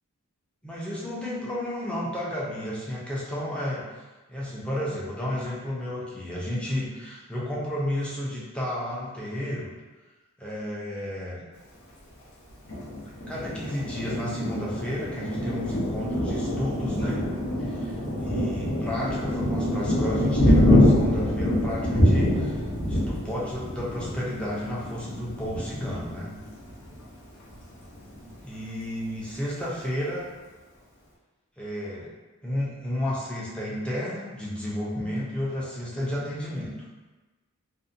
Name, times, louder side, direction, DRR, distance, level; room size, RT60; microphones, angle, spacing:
voice 1, 0.6-3.8 4.3-9.7 10.4-11.4 13.3-17.2 17.6-26.3 28.4-30.3 31.6-32.1 32.4-36.7, left 1 dB, 5° left, -7 dB, 0.5 m, -32 dB
Thunder, 12.7-27.0 27.5-27.6 27.9-28.5, left 1 dB, 70° left, 0.7 m, -25 dB
2.6 x 2.1 x 2.5 m, 1.2 s
head